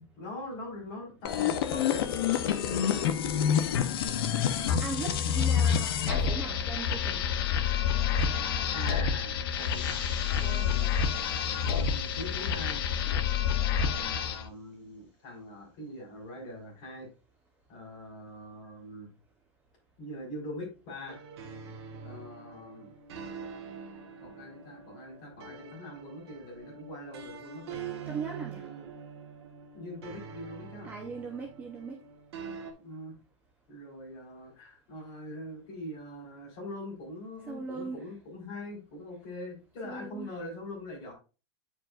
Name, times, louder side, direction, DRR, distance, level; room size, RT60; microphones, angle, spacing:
voice 1, 0.2-4.2 8.7-10.9 11.6-13.2 13.8-17.1 17.7-19.1 20.0-21.3 22.0-22.9 24.2-27.8 28.5-28.9 29.7-30.9 32.8-33.2 33.7-41.1, left 1 dB, 30° left, 3.9 m, -43 dB
sound 1, 1.2-14.5, left 8 dB, 55° left, 0.8 m, -28 dB
voice 2, 4.8-7.3 10.4-10.7 28.1-28.6 30.8-32.0 37.5-38.0 39.8-40.3, right 4 dB, 10° right, 0.7 m, -39 dB
sound 2, 9.4-14.6, equal, 10° left, 2.8 m, -52 dB
sound 3, 21.1-32.7, right 6 dB, 60° right, 1.5 m, -44 dB
9.0 x 4.8 x 2.4 m
supercardioid pair, 180°, 15 cm